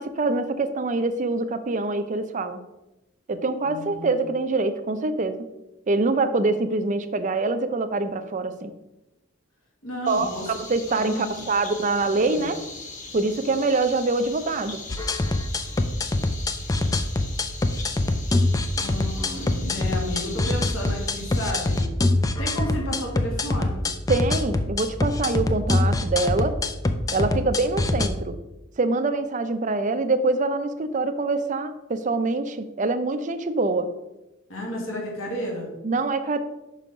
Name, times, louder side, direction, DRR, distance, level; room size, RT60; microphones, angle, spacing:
voice 1, 0.0-2.6 3.3-5.4 5.9-8.7 10.1-12.6 13.1-14.8 24.1-26.6 27.1-28.4 28.8-33.9 35.8-36.4, right 3 dB, 35° right, 9 dB, 0.5 m, -25 dB
voice 2, 3.6-4.3 9.8-10.5 10.9-11.5 12.3-12.5 18.7-21.8 22.4-23.9 27.1-27.5 34.5-35.7, left 1 dB, 65° left, -2 dB, 1.9 m, -33 dB
sound 1, 10.1-21.8, left 3 dB, 35° left, 1.2 m, -40 dB
sound 2, 14.9-28.1, left 2 dB, 15° left, 0.3 m, -24 dB
5.6 x 5.3 x 5.1 m, 0.98 s
head